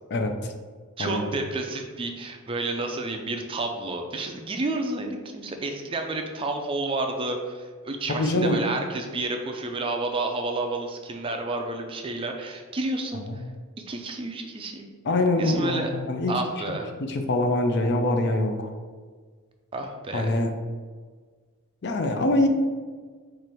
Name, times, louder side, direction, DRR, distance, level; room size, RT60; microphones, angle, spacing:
voice 1, 0.1-0.5 1.0-1.3 8.2-8.6 13.1-13.4 15.0-16.3 17.0-18.7 20.1-20.5 21.8-22.5, left 2 dB, 50° left, 6 dB, 0.4 m, -24 dB
voice 2, 1.0-13.4 13.9-14.9 15.4-15.9 16.3-16.9 19.7-20.3, right 2 dB, 25° right, 3 dB, 0.4 m, -30 dB
4.7 x 2.5 x 4.4 m, 1.5 s
head